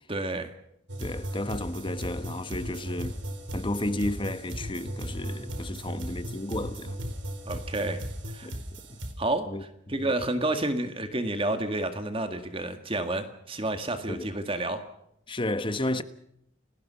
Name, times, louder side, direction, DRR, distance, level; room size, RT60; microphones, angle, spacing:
voice 1, 0.1-0.5 7.5-8.0 8.3-8.5 9.2-14.8, right 2 dB, 30° right, 1.9 m, -30 dB
sound 1, 0.9-9.1, equal, 75° right, 4.6 m, -36 dB
voice 2, 1.0-3.2 3.5-7.0 8.4-8.6 8.9-9.0 9.5-9.6 14.1-14.3 15.3-16.0, left 1 dB, 25° left, 1.2 m, -32 dB
30.0 x 19.0 x 5.7 m
head